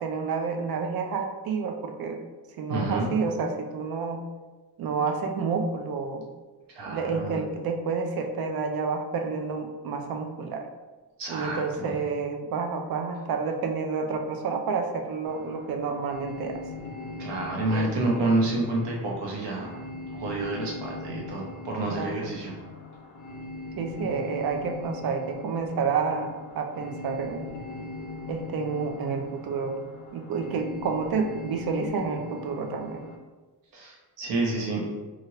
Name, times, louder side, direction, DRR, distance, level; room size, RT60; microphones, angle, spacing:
voice 1, 0.0-2.2 2.6-4.2 4.8-6.2 6.9-10.7 11.3-16.6 17.7-17.9 21.9-22.3 23.8-27.4 28.3-29.8 30.1-33.0, right 5 dB, 60° right, 4 dB, 0.5 m, -29 dB
voice 2, 2.7-3.1 6.7-7.4 11.2-11.9 17.2-19.8 20.1-22.5 33.7-34.8, right 2 dB, 90° right, -2 dB, 0.9 m, -29 dB
sound 1, 15.2-33.1, left 3 dB, 45° left, 0.5 m, -40 dB
3.2 x 2.5 x 2.8 m, 1.3 s
cardioid pair, 145°, 41 cm